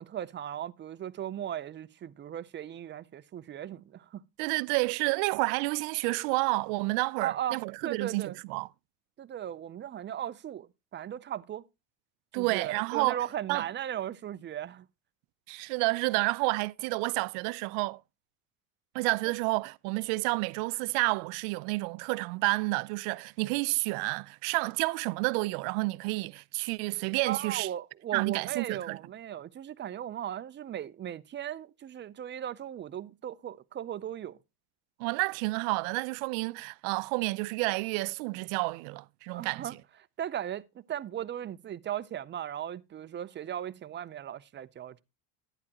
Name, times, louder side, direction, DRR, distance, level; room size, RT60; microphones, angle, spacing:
voice 1, 0.0-4.6 7.2-8.4 9.2-11.6 12.3-14.9 27.2-34.4 39.3-39.8 40.2-45.0, right 10 dB, 25° right, 0.5 m, -37 dB
voice 2, 4.4-8.7 12.3-13.2 13.5-13.6 15.5-18.0 18.9-27.7 28.1-29.0 35.0-39.7, right 26 dB, 75° right, 0.6 m, -30 dB
11.0 x 9.8 x 2.9 m
supercardioid pair, 110°, 46 cm